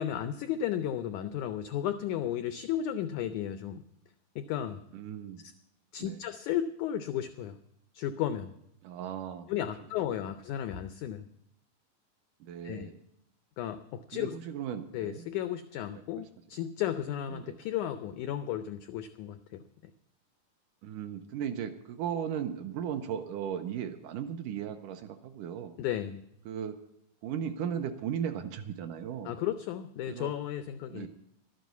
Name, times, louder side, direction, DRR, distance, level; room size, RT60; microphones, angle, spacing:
voice 1, 0.0-3.8 4.3-4.8 5.4-5.5 5.9-7.6 7.9-8.5 9.5-11.3 12.6-12.9 13.6-14.3 14.9-19.6 25.8-26.2 29.2-31.1, left 10 dB, 90° left, 10 dB, 1.7 m, -34 dB
voice 2, 4.9-5.4 6.0-6.2 8.8-9.5 12.4-13.0 14.1-15.2 16.1-16.2 17.3-17.6 20.8-25.7 26.5-26.8 27.2-29.3 30.1-30.3 30.9-31.1, right 8 dB, 80° right, 8 dB, 2.0 m, -36 dB
12.5 x 9.3 x 8.2 m, 0.79 s
omnidirectional pair, 4.2 m